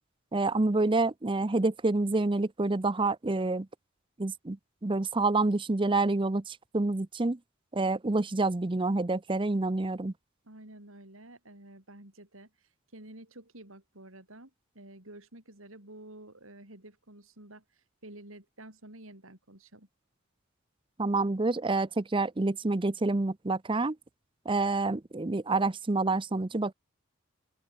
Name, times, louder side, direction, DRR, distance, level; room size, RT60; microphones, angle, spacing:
voice 1, 0.3-3.7 4.2-7.4 7.7-10.1 21.0-24.0 24.5-26.7, right 2 dB, 25° right, 0.6 m, -28 dB
voice 2, 10.4-19.9, right 1 dB, 80° right, 6.4 m, -50 dB
open air
head